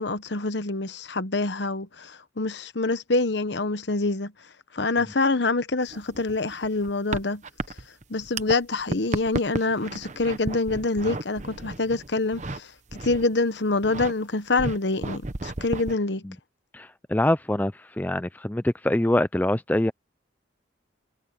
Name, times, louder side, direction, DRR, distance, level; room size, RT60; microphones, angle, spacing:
voice 1, 0.0-4.3 4.7-7.4 8.1-16.2, left 3 dB, 65° left, 1.1 m, -26 dB
sound 1, 5.8-8.6 8.8-12.6 12.9-13.3 13.7-14.1 14.6-15.9, right 2 dB, 40° right, 1.1 m, -33 dB
voice 2, 16.7-17.7 18.0-19.9, left 1 dB, 10° left, 0.4 m, -24 dB
head